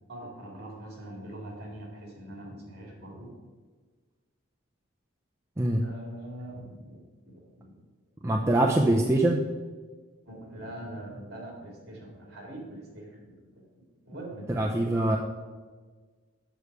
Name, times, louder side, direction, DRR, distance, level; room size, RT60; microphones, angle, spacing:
voice 1, 0.1-3.3 5.8-7.8 10.2-13.6 14.0-15.0, right 1 dB, 50° right, -1 dB, 2.5 m, -43 dB
voice 2, 8.2-9.4 14.6-15.2, right 1 dB, 15° right, -1 dB, 0.4 m, -23 dB
7.0 x 6.8 x 4.7 m, 1.4 s
head